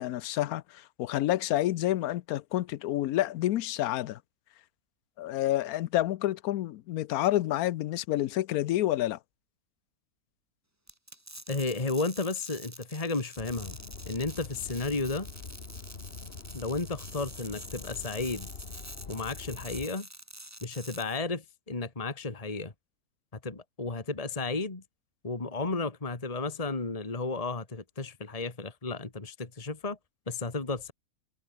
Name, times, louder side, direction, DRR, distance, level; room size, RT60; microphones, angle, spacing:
voice 1, 0.0-4.2 5.2-9.2, left 14 dB, 75° left, 1.1 m, -29 dB
sound 1, 10.9-21.2, right 1 dB, 10° right, 2.2 m, -47 dB
voice 2, 11.5-13.8 14.1-15.3 16.5-18.5 19.1-20.1 20.6-22.7 23.4-24.8 25.2-30.0 30.3-30.9, left 3 dB, 25° left, 2.0 m, -33 dB
sound 2, 13.4-19.9, left 5 dB, 40° left, 1.7 m, -44 dB
omnidirectional pair, 1.6 m